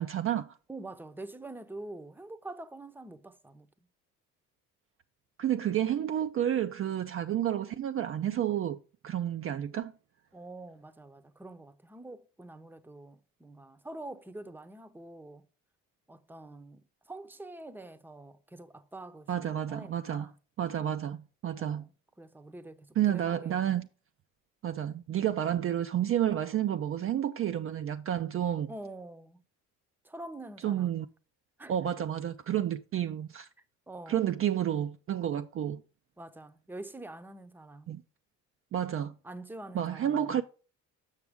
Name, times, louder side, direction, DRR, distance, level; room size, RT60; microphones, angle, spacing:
voice 1, 0.0-0.5 5.4-9.9 19.3-20.3 20.6-21.8 23.0-23.9 24.6-28.7 30.6-31.1 31.7-33.5 34.1-35.8 37.9-38.0 38.7-39.2 39.7-40.4, right 10 dB, 40° right, 0.4 m, -30 dB
voice 2, 0.7-3.7 10.3-15.5 16.1-20.4 21.5-21.9 22.2-23.8 28.7-29.4 30.0-31.0 31.6-31.9 33.9-34.3 36.2-38.0 39.2-40.4, right 2 dB, 5° right, 0.7 m, -46 dB
7.3 x 6.0 x 3.5 m
supercardioid pair, 70°, 34 cm